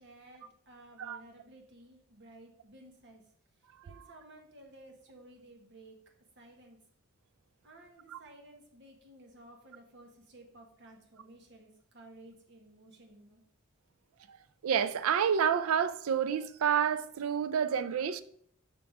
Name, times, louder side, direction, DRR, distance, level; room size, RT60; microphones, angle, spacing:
voice 1, 0.0-3.2 3.8-6.0 6.4-6.8 7.6-13.4, right 1 dB, 55° right, 1.3 m, -55 dB
voice 2, 14.6-18.2, right 7 dB, 75° right, 0.4 m, -29 dB
5.9 x 3.5 x 4.7 m
head